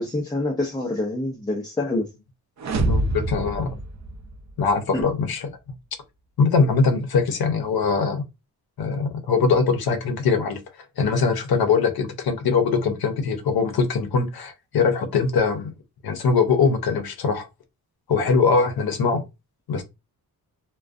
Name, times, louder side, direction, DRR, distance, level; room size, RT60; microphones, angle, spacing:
voice 1, 0.0-2.1 4.9-5.0, left 2 dB, 10° left, 0.3 m, -26 dB
sound 1, 2.6-4.7, right 2 dB, 50° right, 0.4 m, -26 dB
voice 2, 2.9-3.7 4.6-5.5 6.4-8.2 8.8-10.6 11.0-15.7 16.0-17.5 18.1-19.2 19.7-19.8, left 5 dB, 70° left, 0.6 m, -22 dB
2.4 x 2.2 x 2.4 m
wide cardioid pair, 130°, 38 cm